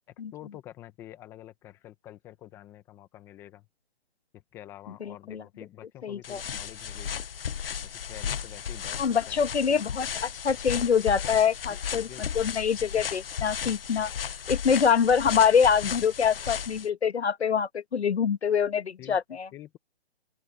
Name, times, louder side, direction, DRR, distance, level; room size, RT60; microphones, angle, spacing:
voice 1, 0.1-3.7 4.3-7.3 7.8-9.4 9.7-9.8 11.2-11.3 11.7-12.2 12.9-13.1 19.0-19.2 19.5-19.8, left 13 dB, 5° left, 1.1 m, -47 dB
voice 2, 5.0-5.4 6.0-6.4 9.0-14.1 14.5-19.5, left 7 dB, 75° left, 1.5 m, -25 dB
sound 1, 6.2-16.9, left 8 dB, 60° left, 0.8 m, -35 dB
open air
hypercardioid pair, 165°, 33 cm